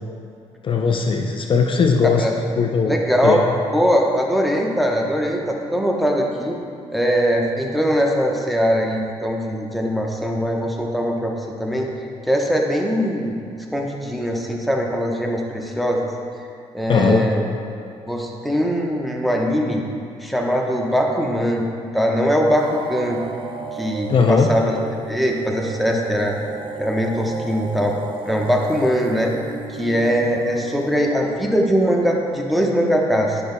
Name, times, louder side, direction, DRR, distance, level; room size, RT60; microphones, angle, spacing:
voice 1, 0.6-2.3 2.6-2.9 3.2-3.4 16.9-17.3 24.1-24.5, left 5 dB, 45° left, 3 dB, 0.5 m, -18 dB
voice 2, 2.9-3.4 3.7-6.6 6.9-11.9 12.3-13.4 13.7-16.1 16.7-17.4 18.1-19.8 20.2-21.6 21.9-23.2 23.7-24.8 25.1-26.4 26.8-28.0 28.3-29.3 29.8-33.4, equal, ahead, 0 dB, 0.9 m, -21 dB
sound 1, 22.5-32.3, right 5 dB, 45° right, 0.5 m, -35 dB
10.0 x 5.3 x 2.2 m, 2.4 s
cardioid pair, 75°, 12 cm